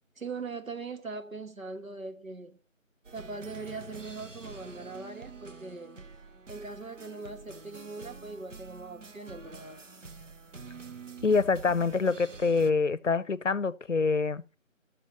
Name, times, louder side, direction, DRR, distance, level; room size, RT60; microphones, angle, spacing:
voice 1, 0.2-2.6 3.1-6.0 6.5-9.8, right 3 dB, 85° right, 1.5 m, -41 dB
sound 1, 3.0-12.7, right 4 dB, 65° right, 0.8 m, -47 dB
voice 2, 11.2-14.4, left 4 dB, 65° left, 0.7 m, -26 dB
11.0 x 7.2 x 4.1 m
figure-of-eight pair, 175°, 40 cm